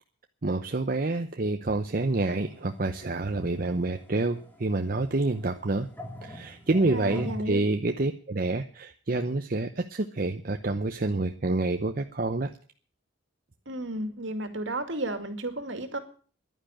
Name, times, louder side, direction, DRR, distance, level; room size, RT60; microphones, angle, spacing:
voice 1, 0.4-5.9 6.2-12.5, right 2 dB, 45° right, 6 dB, 0.8 m, -28 dB
sound 1, 1.9-7.7, equal, 10° left, 2.0 m, -44 dB
voice 2, 6.9-7.6 13.7-16.0, right 2 dB, 65° right, 8 dB, 2.4 m, -33 dB
11.0 x 9.9 x 9.1 m, 0.43 s
head